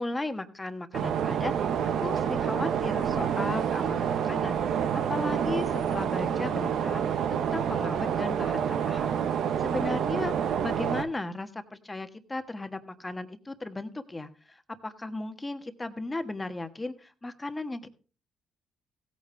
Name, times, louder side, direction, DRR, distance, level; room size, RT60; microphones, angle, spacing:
voice 1, 0.0-17.9, left 2 dB, 15° left, 8 dB, 1.3 m, -36 dB
sound 1, 0.9-11.0, right 8 dB, 75° right, 1.0 m, -28 dB
16.5 x 9.0 x 3.3 m, 0.36 s
cardioid pair, 90°, 0 cm